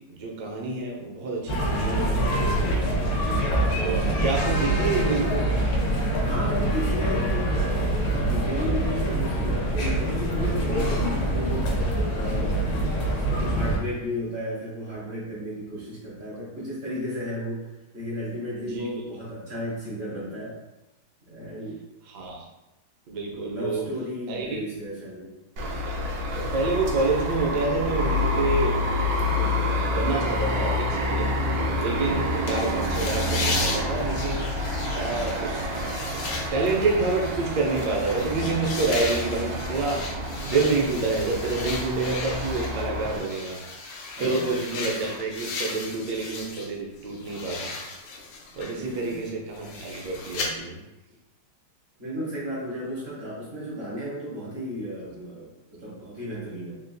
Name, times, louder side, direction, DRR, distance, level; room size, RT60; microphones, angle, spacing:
voice 1, 0.1-2.7 3.8-5.3 18.6-18.9 22.1-22.4 23.1-23.8 24.3-24.6 26.5-31.3 31.8-35.6 36.3-40.0 40.4-43.6 44.2-47.7 48.6-50.8, right 3 dB, 65° right, -1 dB, 1.1 m, -28 dB
sound 1, 1.5-13.8, right 1 dB, 70° left, 1.2 m, -25 dB
voice 2, 4.4-4.8 6.2-11.7 12.1-20.6 21.3-21.8 23.3-25.3 44.1-44.6 48.6-49.3 52.0-56.8, equal, 45° right, -8 dB, 0.8 m, -34 dB
sound 2, 25.6-43.2, left 1 dB, 85° right, 0.8 m, -28 dB
sound 3, 32.5-46.7 47.0-50.5, left 3 dB, 90° left, 1.5 m, -36 dB
3.7 x 2.4 x 2.6 m, 0.98 s
omnidirectional pair, 2.3 m